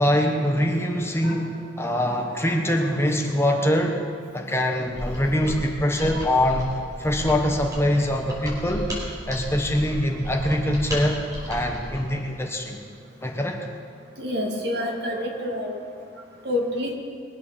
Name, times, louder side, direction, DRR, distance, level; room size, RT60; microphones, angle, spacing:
voice 1, 0.0-4.0 4.3-6.7 7.0-8.9 9.3-11.2 11.5-12.8 13.2-13.6, left 1 dB, 15° left, 2 dB, 1.2 m, -23 dB
Mechanisms, 4.9-12.1, equal, 20° right, 5.1 m, -34 dB
voice 2, 14.2-15.8 16.4-16.9, left 1 dB, 60° right, 0 dB, 2.3 m, -28 dB
22.0 x 8.2 x 6.9 m, 2.2 s
head